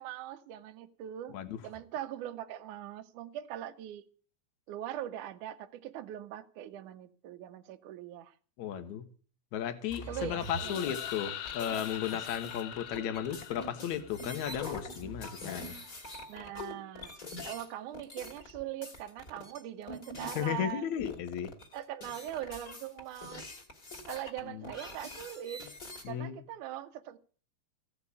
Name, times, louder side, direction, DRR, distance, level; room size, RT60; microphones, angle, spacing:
voice 1, 0.0-1.4 1.6-4.0 4.7-8.3 10.1-10.9 16.3-17.1 17.4-20.9 21.7-23.4 24.1-25.7 26.1-27.2, right 12 dB, 85° right, 1.7 m, -41 dB
voice 2, 8.6-9.1 9.5-15.8 20.4-21.5 24.5-24.6 26.0-26.4, left 9 dB, 70° left, 1.8 m, -35 dB
sound 1, 9.9-20.7 21.0-26.1, left 2 dB, 25° left, 2.3 m, -44 dB
sound 2, 10.4-14.3, left 11 dB, 85° left, 3.4 m, -42 dB
16.0 x 6.7 x 9.6 m
omnidirectional pair, 5.2 m